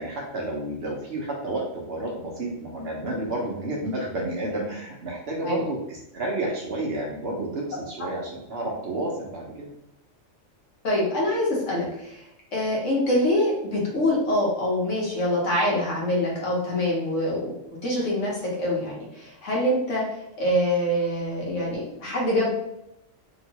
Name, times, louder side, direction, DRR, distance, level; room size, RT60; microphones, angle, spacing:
voice 1, 0.0-9.7, right 1 dB, 60° right, -3 dB, 0.8 m, -31 dB
voice 2, 10.8-12.2 12.5-17.6 17.8-20.0 20.4-22.5, left 1 dB, 65° left, -4 dB, 1.3 m, -25 dB
2.9 x 2.8 x 2.8 m, 0.83 s
omnidirectional pair, 1.4 m